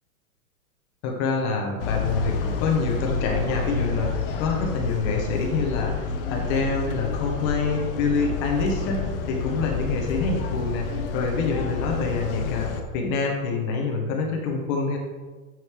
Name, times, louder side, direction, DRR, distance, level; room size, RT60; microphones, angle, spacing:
voice 1, 1.0-9.0 9.3-15.0, left 4 dB, 25° left, 1 dB, 1.1 m, -26 dB
sound 1, 1.8-12.8, left 5 dB, 40° left, 0.7 m, -29 dB
8.9 x 6.4 x 3.7 m, 1.4 s
supercardioid pair, 170°, 44 cm